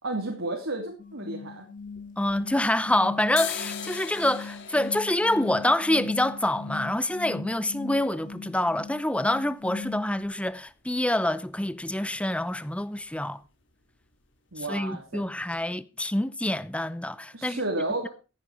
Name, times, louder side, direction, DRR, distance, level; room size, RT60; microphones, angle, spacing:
voice 1, 0.0-1.7 14.5-15.2 17.3-18.1, right 2 dB, 80° right, 3.1 m, -32 dB
sound 1, 1.0-10.2, left 4 dB, 45° left, 2.0 m, -40 dB
sound 2, 1.8-2.8 3.2-10.9 11.2-11.3 11.6-12.1 12.4-12.7 12.9-13.2 13.4-14.2 14.5-14.7 15.1-15.2 15.5-15.6, left 8 dB, 65° left, 2.4 m, -42 dB
voice 2, 2.2-13.4 14.6-17.6, left 1 dB, 5° left, 0.7 m, -26 dB
15.0 x 9.4 x 4.9 m
head